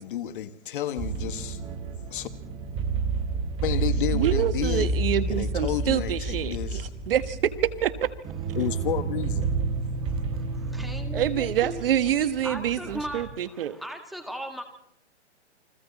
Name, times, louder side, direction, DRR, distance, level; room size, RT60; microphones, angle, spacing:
voice 1, 0.0-1.8 2.0-2.3 3.6-4.9 5.3-6.9 8.5-9.5, left 11 dB, 45° left, 1.7 m, -31 dB
sound 1, 1.0-13.4, right 4 dB, 15° right, 1.4 m, -30 dB
voice 2, 4.1-7.5 7.8-7.9 11.1-13.8, right 10 dB, 50° right, 1.5 m, -26 dB
voice 3, 10.0-11.8 12.4-14.6, equal, ahead, 1.9 m, -38 dB
29.5 x 23.0 x 4.2 m
hypercardioid pair, 150°, 35 cm